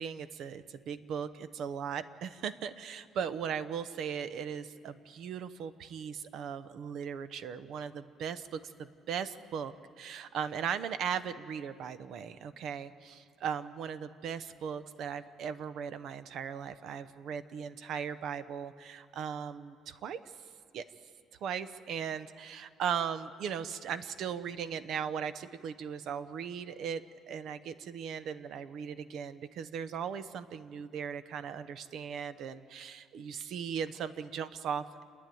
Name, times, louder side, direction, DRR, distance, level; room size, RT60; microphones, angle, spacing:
voice 1, 0.0-20.2 20.7-20.8 21.4-27.0 27.3-35.0, right 7 dB, 65° right, 12 dB, 0.9 m, -38 dB
29.5 x 10.5 x 9.3 m, 2.2 s
cardioid pair, 110°, 0 cm